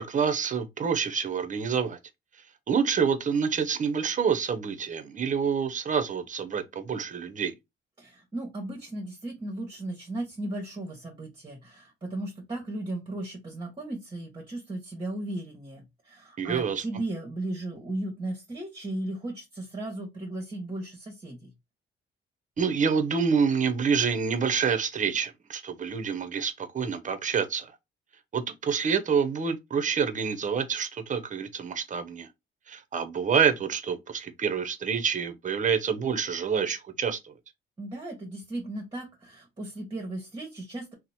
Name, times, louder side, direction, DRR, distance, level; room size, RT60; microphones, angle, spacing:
voice 1, 0.0-2.0 2.7-7.5 16.4-16.8 22.6-27.7 28.3-32.3 32.7-37.3, right 6 dB, 40° right, 0.7 m, -27 dB
voice 2, 8.0-21.5 37.8-40.9, right 1 dB, 25° right, 1.1 m, -36 dB
2.9 x 2.1 x 4.0 m
cardioid pair, 90°, 20 cm